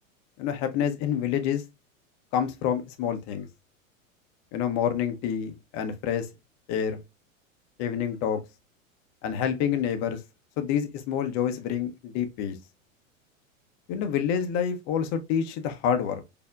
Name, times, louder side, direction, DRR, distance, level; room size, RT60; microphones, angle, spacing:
voice 1, 0.4-1.6 2.3-3.5 4.5-6.3 6.7-7.0 7.8-8.4 9.2-10.2 10.6-12.6 13.9-16.2, left 8 dB, 40° left, 0.7 m, -27 dB
4.2 x 2.8 x 2.2 m
hypercardioid pair, 100°, 41 cm